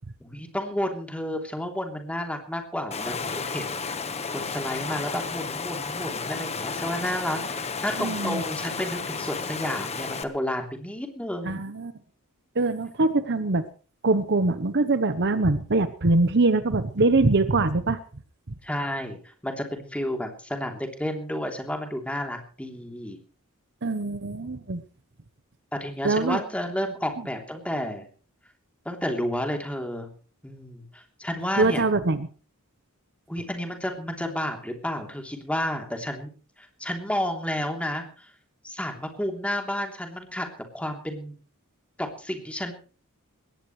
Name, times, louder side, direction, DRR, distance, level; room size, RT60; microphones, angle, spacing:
voice 1, 0.2-4.0 4.3-11.6 18.6-19.2 19.4-23.2 25.7-28.1 28.8-30.1 30.4-31.9 33.3-36.3 36.6-38.3 38.6-40.5 40.7-41.3 42.0-42.7, left 1 dB, 5° left, 3 dB, 3.2 m, -31 dB
Water, 2.9-10.2, left 4 dB, 30° left, 1.3 m, -32 dB
voice 2, 8.0-8.4 11.4-11.9 12.5-13.6 14.0-18.0 23.8-24.8 26.0-26.4 31.6-32.3, right 3 dB, 55° right, 12 dB, 1.0 m, -23 dB
21.0 x 18.0 x 3.2 m, 0.39 s
head